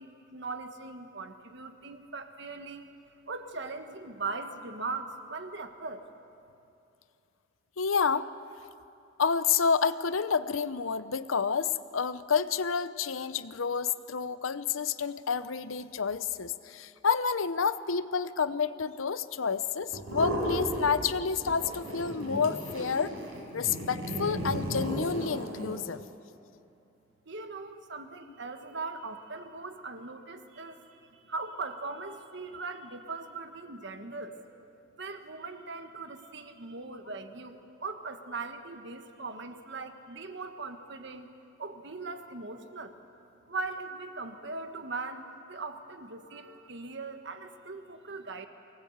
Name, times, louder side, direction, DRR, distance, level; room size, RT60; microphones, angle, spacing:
voice 1, 0.0-2.9 3.3-6.0 27.2-34.4 35.0-41.3 41.6-43.0 43.5-48.5, right 3 dB, 60° right, 7 dB, 1.4 m, -40 dB
voice 2, 7.8-8.3 9.2-23.1 23.5-26.0, left 6 dB, 90° left, 14 dB, 0.7 m, -29 dB
sound 1, 19.9-21.2 21.4-25.8, right 1 dB, 85° right, 5.3 m, -34 dB
24.0 x 19.0 x 8.0 m, 2.7 s
head